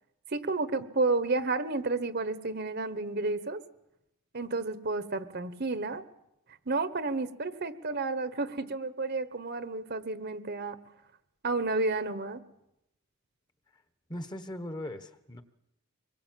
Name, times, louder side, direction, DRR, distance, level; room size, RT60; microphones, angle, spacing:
voice 1, 0.3-3.6 4.3-6.0 6.7-10.8 11.4-12.4, right 3 dB, 45° right, 11 dB, 1.2 m, -31 dB
voice 2, 14.1-15.4, left 1 dB, 20° left, 9 dB, 1.3 m, -39 dB
25.0 x 22.5 x 7.6 m, 0.85 s
head